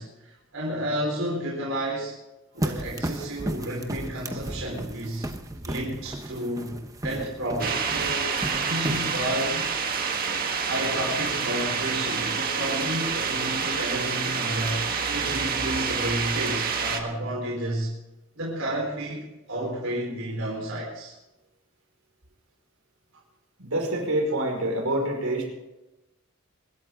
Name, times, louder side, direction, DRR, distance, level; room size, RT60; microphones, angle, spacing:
voice 1, 0.0-2.1 2.5-5.3 5.7-9.7 10.6-17.9 18.4-21.1, right 1 dB, 70° right, -4 dB, 4.3 m, -31 dB
sound 1, 2.6-9.4, right 1 dB, 15° right, 1.0 m, -34 dB
sound 2, 7.6-17.0, right 6 dB, 45° right, 1.8 m, -28 dB
voice 2, 23.6-25.5, right 1 dB, 85° right, 1 dB, 5.5 m, -26 dB
24.0 x 13.0 x 3.8 m, 0.99 s
head